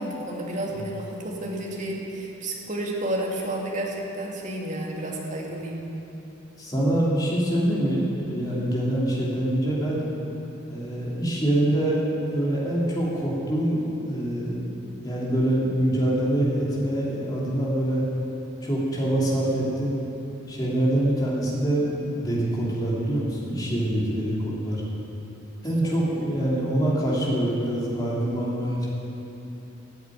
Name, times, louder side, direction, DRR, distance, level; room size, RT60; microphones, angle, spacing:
voice 1, 0.0-5.8 25.8-26.2, right 1 dB, 40° right, -2 dB, 2.2 m, -31 dB
voice 2, 6.6-10.1 10.7-14.6 15.0-18.0 18.6-20.0 20.5-24.8 25.6-28.9, right 1 dB, 20° left, -6 dB, 3.0 m, -25 dB
14.0 x 8.0 x 9.2 m, 3.0 s
head